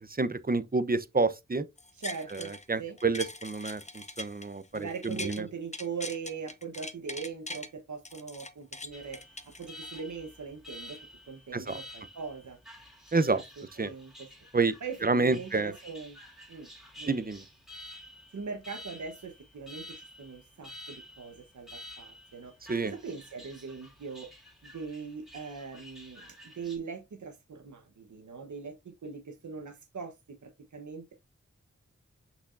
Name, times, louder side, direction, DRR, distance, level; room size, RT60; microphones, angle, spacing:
voice 1, 0.1-1.6 2.7-4.6 5.0-5.4 11.5-11.8 13.1-13.4 13.8-13.9 14.5-14.7 15.0-15.7 17.1-17.4 22.7-22.9, right 3 dB, 30° right, 0.9 m, -28 dB
sound 1, 1.8-2.6 3.0-5.4 5.7-7.7 8.0-10.0 10.5-10.6, left 2 dB, 25° left, 0.9 m, -42 dB
voice 2, 1.9-2.5 2.8-3.0 4.7-9.2 9.6-11.0 11.3-12.6 13.1-14.3 14.8-16.2 16.5-16.7 17.0-17.2 18.3-22.5 22.8-24.3 24.6-31.1, right 5 dB, 75° right, 1.2 m, -41 dB
Alarm, 8.9-26.8, left 1 dB, ahead, 2.4 m, -50 dB
6.2 x 6.1 x 2.7 m
cardioid pair, 50°, 30 cm